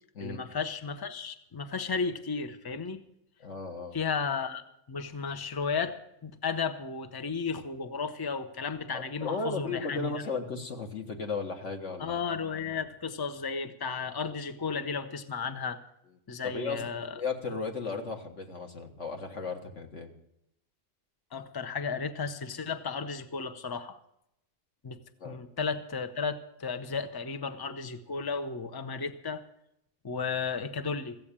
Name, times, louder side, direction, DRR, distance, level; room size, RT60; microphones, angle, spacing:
voice 1, 0.2-3.0 3.9-4.6 4.9-10.1 12.0-15.8 16.3-17.2 21.3-24.0 24.8-25.0 25.2-29.4 30.0-31.2, left 5 dB, 20° left, 9 dB, 0.7 m, -34 dB
voice 2, 3.4-4.0 8.9-12.2 16.4-20.1 25.2-25.4, left 4 dB, 90° left, 3 dB, 1.9 m, -35 dB
15.5 x 7.9 x 8.7 m, 0.79 s
omnidirectional pair, 1.2 m